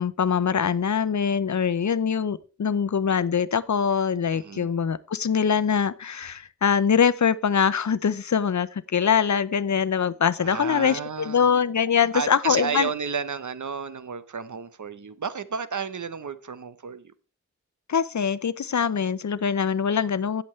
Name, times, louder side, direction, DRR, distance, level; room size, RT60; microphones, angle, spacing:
voice 1, 0.0-12.9 17.9-20.4, left 7 dB, 70° left, 0.6 m, -23 dB
voice 2, 4.3-4.7 10.4-11.5 12.1-17.1, right 6 dB, 75° right, 0.8 m, -32 dB
16.5 x 7.0 x 3.2 m
cardioid pair, 40°, 30 cm